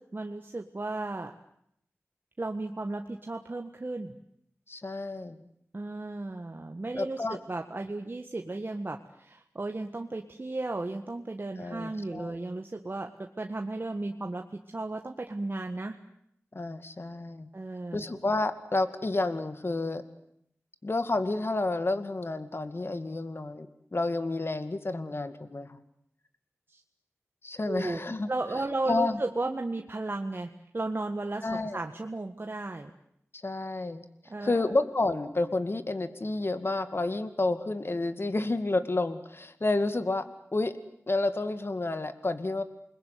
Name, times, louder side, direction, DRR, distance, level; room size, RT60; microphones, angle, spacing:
voice 1, 0.0-1.3 2.4-4.2 5.7-16.0 17.5-18.1 26.7-26.8 27.7-28.0 28.3-32.9 34.3-34.7, right 2 dB, 45° right, 5 dB, 1.6 m, -35 dB
voice 2, 4.7-5.4 7.0-7.4 11.6-12.4 16.5-17.5 17.9-20.0 20.8-25.8 27.4-28.3 28.9-29.2 31.4-31.8 33.4-34.0 34.4-40.2 40.5-40.7 41.1-42.6, left 2 dB, 50° left, 11 dB, 2.2 m, -30 dB
28.5 x 21.5 x 9.5 m, 0.74 s
wide cardioid pair, 60°, 5 cm